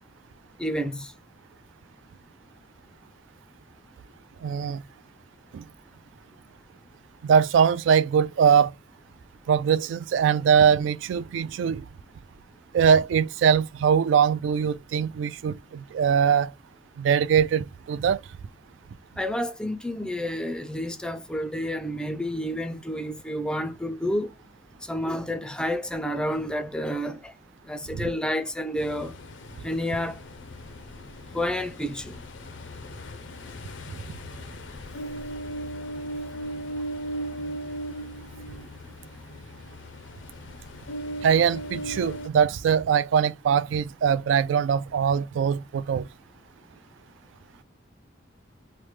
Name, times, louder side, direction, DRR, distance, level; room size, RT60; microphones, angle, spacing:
voice 1, 0.6-1.1 19.2-24.3 24.8-27.3 27.6-29.1 29.6-30.2 31.3-32.2, equal, 5° left, 0.3 m, -30 dB
voice 2, 4.4-4.8 5.5-5.6 7.2-8.7 9.5-11.9 12.7-16.5 17.0-18.2 27.9-28.1 33.9-34.0 41.2-46.1, right 7 dB, 85° right, 0.3 m, -22 dB
Ocean, 28.8-42.3, equal, 80° left, 0.5 m, -38 dB
3.1 x 2.1 x 3.1 m
head